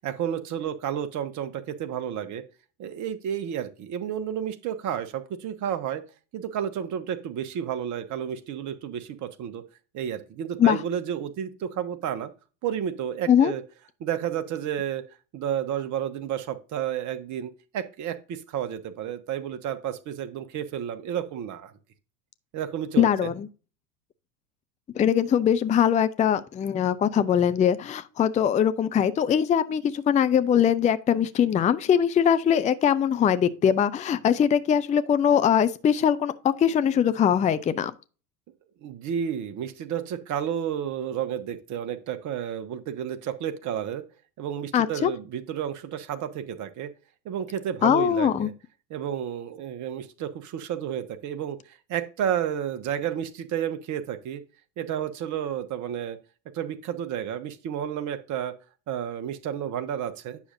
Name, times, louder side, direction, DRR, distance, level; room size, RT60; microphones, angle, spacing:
voice 1, 0.0-2.4 2.8-6.0 6.3-9.6 9.9-12.3 12.6-13.6 14.0-15.0 15.3-21.7 22.5-23.3 38.8-44.0 44.4-46.9 47.2-48.5 48.9-54.4 54.8-56.2 56.5-58.5 58.9-60.4, right 9 dB, 40° right, 1.1 m, -31 dB
voice 2, 23.0-23.5 25.0-37.9 44.7-45.1 47.8-48.5, left 8 dB, 15° left, 0.5 m, -22 dB
9.8 x 6.3 x 2.7 m
hypercardioid pair, 80°, 47 cm